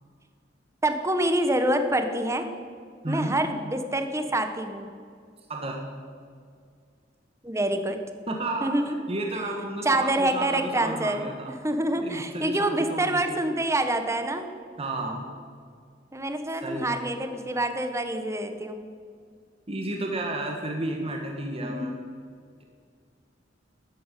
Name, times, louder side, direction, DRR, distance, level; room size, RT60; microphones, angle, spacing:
voice 1, 0.8-2.5 3.1-4.9 7.4-8.0 8.6-8.9 9.8-11.3 11.6-14.5 16.1-18.8 21.6-21.9, right 1 dB, 15° right, 7 dB, 1.2 m, -26 dB
voice 2, 3.0-3.3 5.5-5.9 8.3-8.7 9.1-11.6 11.9-13.3 14.8-15.3 16.6-17.0 19.7-21.9, right 2 dB, 30° right, 1 dB, 1.6 m, -32 dB
13.0 x 8.8 x 9.2 m, 2.1 s
head